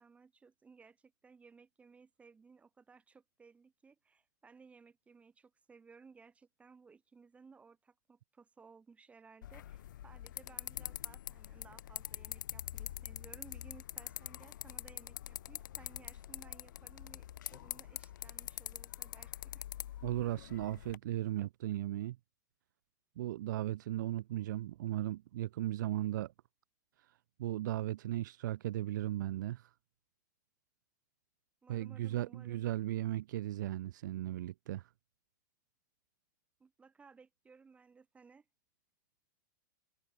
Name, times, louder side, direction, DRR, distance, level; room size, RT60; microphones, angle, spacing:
voice 1, 0.0-19.7 31.6-32.6 36.6-38.4, right 5 dB, 15° right, 2.8 m, -60 dB
sound 1, 9.4-21.0, left 12 dB, 85° left, 0.6 m, -45 dB
voice 2, 20.0-22.2 23.2-26.3 27.4-29.7 31.7-34.8, right 14 dB, 75° right, 0.4 m, -36 dB
supercardioid pair, 140°, 10 cm